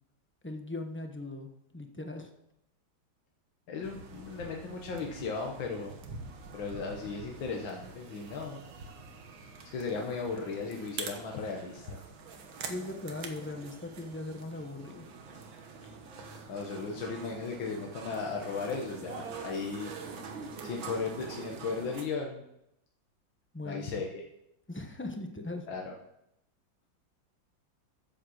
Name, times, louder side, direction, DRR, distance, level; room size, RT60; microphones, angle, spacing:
voice 1, 0.4-2.3 12.7-15.1 23.5-23.9 24.7-25.7, left 2 dB, 10° left, 4 dB, 0.6 m, -39 dB
voice 2, 3.7-5.9 6.5-8.6 9.6-12.0 16.5-20.0 20.6-22.4 23.6-24.2 25.7-25.9, left 4 dB, 80° left, 0 dB, 1.9 m, -36 dB
sound 1, 3.8-22.1, right 4 dB, 90° right, 2.0 m, -45 dB
9.8 x 7.7 x 6.3 m, 0.81 s
omnidirectional pair, 2.1 m